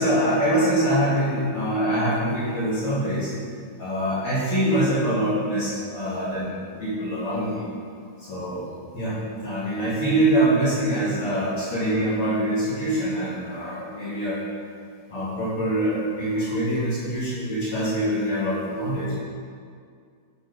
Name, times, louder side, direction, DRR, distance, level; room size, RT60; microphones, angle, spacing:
voice 1, 0.0-3.3 3.8-7.6 8.2-8.7 8.9-14.4 15.1-19.2, right 1 dB, 45° left, -10 dB, 2.0 m, -24 dB
8.0 x 3.9 x 5.1 m, 2.2 s
omnidirectional pair, 3.9 m